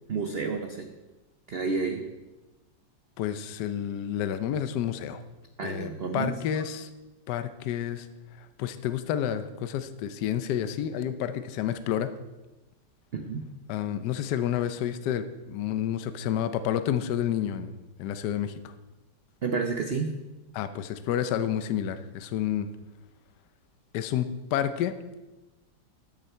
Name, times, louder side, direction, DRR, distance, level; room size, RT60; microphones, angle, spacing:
voice 1, 0.1-0.9 1.5-2.0 5.6-6.7 13.1-13.4 19.4-20.1, right 4 dB, 75° right, 5 dB, 0.5 m, -30 dB
voice 2, 3.2-5.2 5.6-6.9 7.3-8.1 8.4-12.1 13.7-17.7 18.0-18.7 20.5-22.7 23.9-24.9, left 10 dB, 70° left, 11 dB, 1.2 m, -30 dB
14.0 x 6.5 x 4.4 m, 1.1 s
omnidirectional pair, 2.0 m